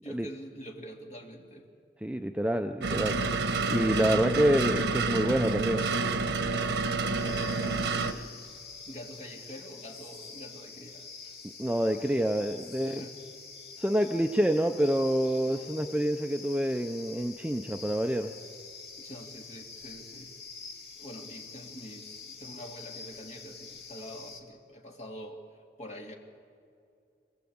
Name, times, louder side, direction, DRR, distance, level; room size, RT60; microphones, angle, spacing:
voice 1, 0.0-1.7 7.1-8.5 8.9-11.3 12.8-13.2 15.5-15.6 18.9-20.4 20.9-25.5 25.8-26.1, equal, 40° left, 1 dB, 2.4 m, -46 dB
voice 2, 2.0-5.9 11.6-13.0 13.8-18.3, equal, 5° right, 5 dB, 0.5 m, -27 dB
sound 1, 2.8-8.1, right 3 dB, 80° right, 1.2 m, -29 dB
sound 2, 7.2-24.4, left 5 dB, 65° left, 2.3 m, -46 dB
26.0 x 15.5 x 8.7 m, 2.4 s
head